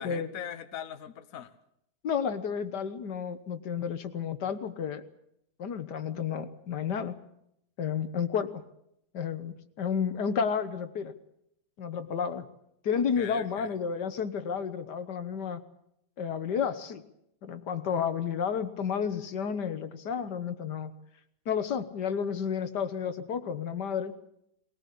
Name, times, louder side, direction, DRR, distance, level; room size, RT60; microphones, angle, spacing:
voice 1, 0.0-1.5 12.9-13.7, left 9 dB, 55° left, 10 dB, 1.4 m, -41 dB
voice 2, 2.0-5.0 5.6-7.2 7.8-8.6 9.1-11.1 11.8-12.5 12.8-15.6 16.2-17.0 17.4-20.9 21.5-24.1, left 7 dB, 80° left, 11 dB, 1.8 m, -31 dB
20.0 x 19.5 x 8.5 m, 0.75 s
omnidirectional pair, 1.8 m